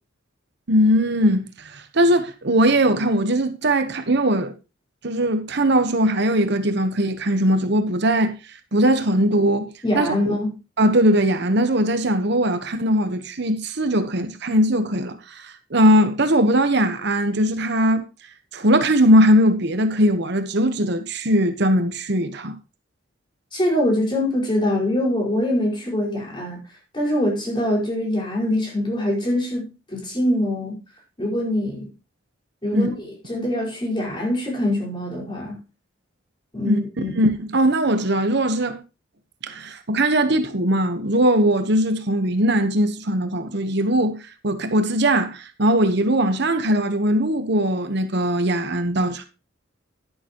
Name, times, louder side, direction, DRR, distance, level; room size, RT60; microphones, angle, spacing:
voice 1, 0.7-4.5 5.0-8.3 8.7-9.7 9.9-10.4 10.8-18.0 18.5-22.5 32.7-32.9 36.6-36.8 37.2-38.8 39.4-49.2, right 1 dB, 60° right, 1.1 m, -20 dB
voice 2, 9.8-10.5 23.5-26.6 26.9-30.8 31.2-31.9 32.6-35.6 36.5-37.1, left 1 dB, 25° left, 5.0 m, -24 dB
11.0 x 11.0 x 3.0 m
head